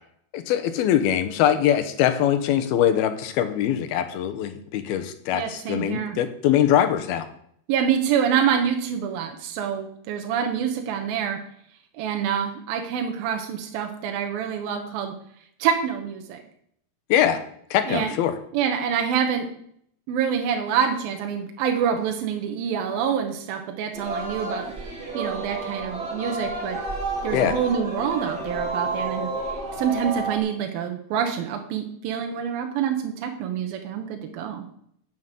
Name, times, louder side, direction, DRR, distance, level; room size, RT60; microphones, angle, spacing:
voice 1, 0.3-7.3 17.1-17.4 17.7-18.3 27.3-27.5, left 10 dB, 80° left, 10 dB, 2.9 m, -22 dB
voice 2, 5.3-6.2 7.7-11.4 11.9-15.1 15.6-16.4 17.9-18.1 18.5-19.5 20.1-24.7 25.1-26.8 27.2-29.3 29.8-34.6, right 8 dB, 75° right, 4 dB, 2.9 m, -26 dB
Singing, 23.9-30.4, right 3 dB, 20° right, 3.0 m, -30 dB
9.4 x 8.2 x 7.6 m, 0.68 s
omnidirectional pair, 4.4 m